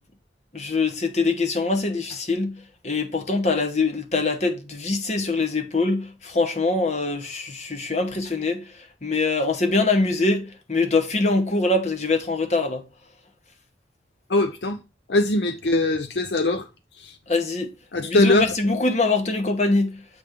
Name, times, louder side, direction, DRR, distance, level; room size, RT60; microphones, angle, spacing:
voice 1, 0.5-2.6 2.8-8.6 9.0-12.8 17.3-17.7 18.0-20.0, left 3 dB, 40° left, 1.1 m, -23 dB
voice 2, 14.3-14.8 15.1-16.7 17.0-17.1 17.9-18.5, left 2 dB, 75° left, 0.7 m, -21 dB
8.0 x 3.4 x 5.2 m
head